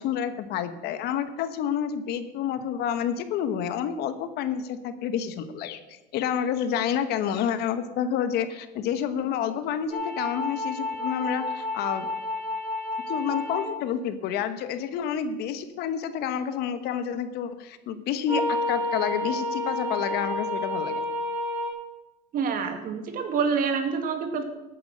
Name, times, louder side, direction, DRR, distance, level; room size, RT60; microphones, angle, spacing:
voice 1, 0.0-12.1 13.1-21.1, left 8 dB, 55° left, 11 dB, 1.2 m, -29 dB
sound 1, 9.9-13.7 18.3-21.7, left 1 dB, 5° right, 5.3 m, -30 dB
voice 2, 22.3-24.4, right 5 dB, 45° right, 6 dB, 2.2 m, -27 dB
13.5 x 9.2 x 6.5 m, 1.1 s
supercardioid pair, 120°, 19 cm